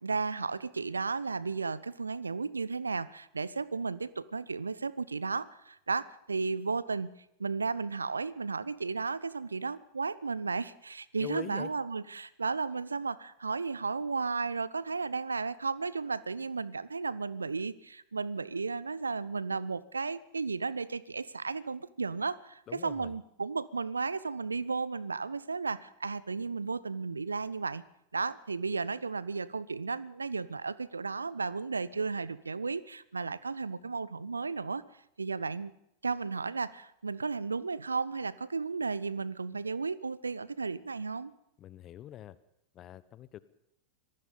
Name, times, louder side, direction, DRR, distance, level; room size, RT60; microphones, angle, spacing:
voice 1, 0.0-7.1 7.4-27.8 28.1-34.8 35.2-35.7 36.0-41.3, right 4 dB, 75° right, 20 dB, 0.8 m, -34 dB
voice 2, 11.2-11.7 22.7-23.1 41.6-42.4 42.7-43.4, left 12 dB, 30° left, 17 dB, 1.1 m, -43 dB
25.5 x 19.0 x 5.3 m, 0.78 s
figure-of-eight pair, 90°, 0 cm